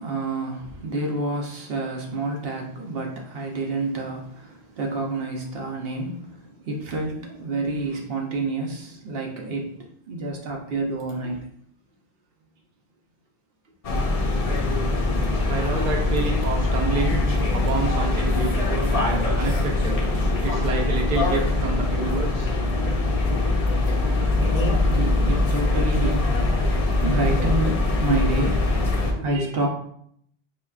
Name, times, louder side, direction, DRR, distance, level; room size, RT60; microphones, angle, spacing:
voice 1, 0.0-11.5 23.9-24.0 24.4-26.3 27.0-28.6 29.1-29.7, right 2 dB, 70° right, 0 dB, 0.9 m, -28 dB
sound 1, 13.8-29.1, left 2 dB, 45° left, 0.6 m, -22 dB
voice 2, 15.5-17.2 17.5-20.0 20.4-22.5, right 4 dB, 45° right, 0 dB, 0.6 m, -28 dB
4.4 x 3.0 x 2.3 m, 0.67 s
omnidirectional pair, 1.0 m